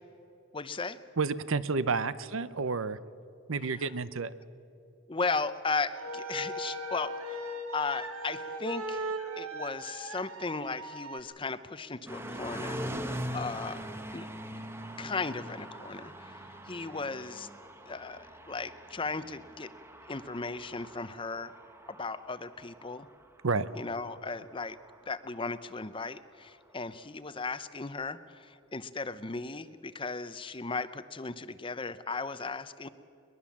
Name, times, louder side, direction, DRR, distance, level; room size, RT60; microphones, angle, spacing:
voice 1, 0.5-1.0 3.7-3.9 5.1-12.8 13.3-13.8 14.1-14.3 15.0-17.5 17.9-19.7 20.1-21.5 21.9-23.1 23.7-24.8 25.1-32.9, left 4 dB, 25° left, 14 dB, 0.6 m, -36 dB
voice 2, 1.2-3.0 3.5-4.3 23.4-23.7, right 4 dB, 70° right, 15 dB, 0.7 m, -30 dB
sound 1, 5.8-11.2, right 1 dB, 90° right, 2.1 m, -38 dB
sound 2, 12.1-26.1, equal, 10° right, 1.0 m, -43 dB
22.0 x 21.0 x 7.3 m, 2.6 s
head